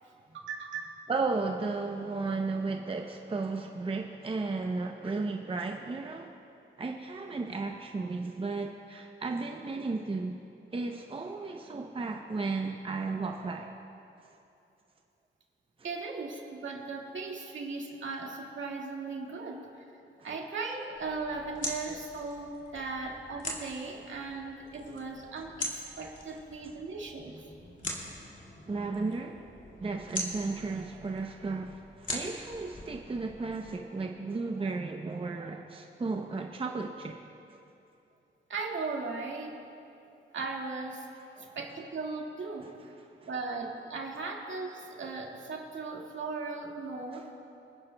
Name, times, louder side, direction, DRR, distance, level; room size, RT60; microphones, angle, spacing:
voice 1, 0.3-0.9 15.8-19.6 20.2-25.7 26.0-27.3 38.5-39.5 40.3-41.1 41.6-42.8 43.3-47.3, right 3 dB, 70° right, -1 dB, 1.8 m, -37 dB
voice 2, 1.1-6.3 6.8-10.4 10.7-13.7 28.7-29.5 29.8-37.2 41.4-41.5, right 3 dB, 25° right, 3 dB, 0.6 m, -34 dB
sound 1, 20.9-33.7, left 1 dB, 40° left, 2.2 m, -42 dB
28.5 x 10.0 x 2.2 m, 2.7 s
cardioid pair, 90°, 20 cm